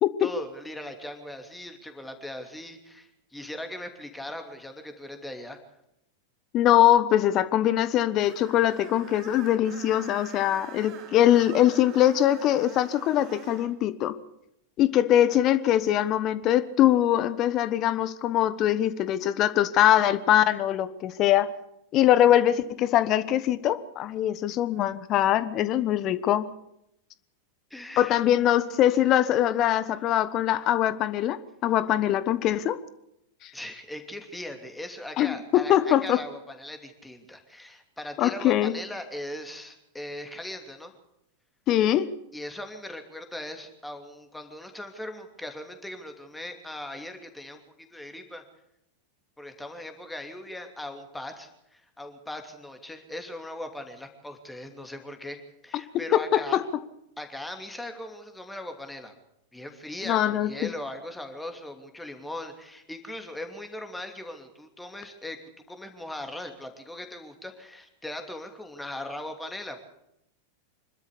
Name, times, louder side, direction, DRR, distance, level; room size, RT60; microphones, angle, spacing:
voice 1, 0.2-5.6 27.7-28.2 33.5-40.9 42.3-48.4 49.4-56.6 57.2-59.1 59.5-65.4 65.7-69.8, left 1 dB, 5° left, 6 dB, 2.8 m, -39 dB
voice 2, 6.5-14.2 14.8-21.5 21.9-26.5 28.0-32.8 33.4-33.5 35.2-36.2 38.2-38.7 41.7-42.1 56.1-56.6 60.1-60.7, left 12 dB, 35° left, 15 dB, 1.2 m, -22 dB
Screech, 8.2-13.7, right 8 dB, 40° right, 2.4 m, -45 dB
25.5 x 13.0 x 8.4 m, 0.82 s
figure-of-eight pair, 90°, 0 cm